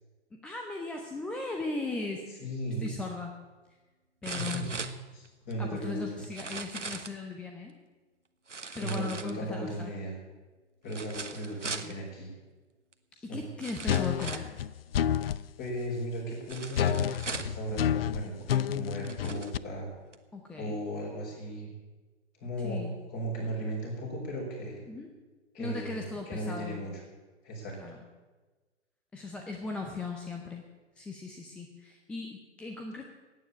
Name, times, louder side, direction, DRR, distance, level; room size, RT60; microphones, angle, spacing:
voice 1, 0.3-2.4 2.8-3.4 4.2-4.7 5.6-7.7 8.7-9.9 11.8-11.9 13.2-14.5 20.3-20.8 22.6-22.9 24.9-25.2 25.6-26.8 27.8-28.0 29.1-30.7 31.0-33.1, left 3 dB, 5° left, 2 dB, 0.5 m, -38 dB
voice 2, 2.4-2.9 4.3-4.7 5.1-6.0 8.7-10.1 10.8-12.3 13.1-13.5 15.6-19.9 20.6-21.7 22.4-22.8 23.1-24.8 25.5-26.9 27.4-27.7, right 1 dB, 30° left, -1 dB, 6.3 m, -36 dB
sound 1, 2.9-3.0 4.2-5.5 6.2-7.2 8.5-9.7 10.9-11.9 12.9-13.0 13.6-14.6 16.5-17.6 18.4-18.5 19.0-19.5 20.1-20.2, right 4 dB, 90° right, 1.3 m, -39 dB
sound 2, 13.9-15.4 16.7-19.6, left 10 dB, 55° left, 0.5 m, -29 dB
16.0 x 9.5 x 8.7 m, 1.3 s
figure-of-eight pair, 120°, 36 cm